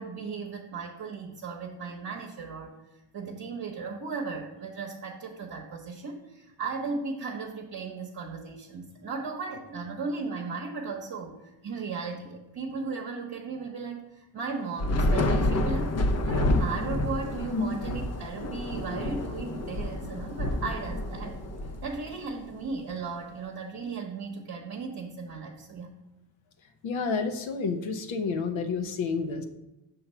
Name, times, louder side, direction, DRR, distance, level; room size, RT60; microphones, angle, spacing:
voice 1, 0.0-2.7 3.1-15.9 16.2-21.4 21.8-25.9, right 4 dB, 55° right, -1 dB, 0.9 m, -36 dB
Thunder / Rain, 14.8-22.3, left 1 dB, 35° left, 0.6 m, -28 dB
voice 2, 26.8-29.4, left 4 dB, 75° left, 7 dB, 0.9 m, -29 dB
5.8 x 3.6 x 5.5 m, 0.97 s
cardioid pair, 85°, 46 cm